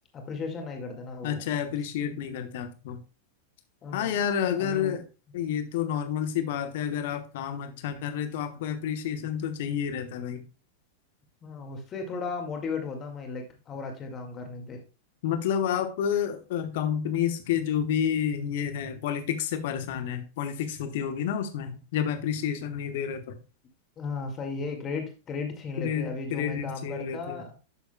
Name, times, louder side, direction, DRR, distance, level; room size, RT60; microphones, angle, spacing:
voice 1, 0.1-1.4 3.8-4.2 4.6-5.0 11.4-14.8 24.0-27.5, left 4 dB, 25° left, 3 dB, 2.0 m, -35 dB
voice 2, 1.2-3.0 3.9-5.0 5.3-10.4 15.2-23.4 25.8-27.5, left 8 dB, 55° left, 9 dB, 1.1 m, -30 dB
11.0 x 6.9 x 2.2 m, 0.32 s
figure-of-eight pair, 90°, 0 cm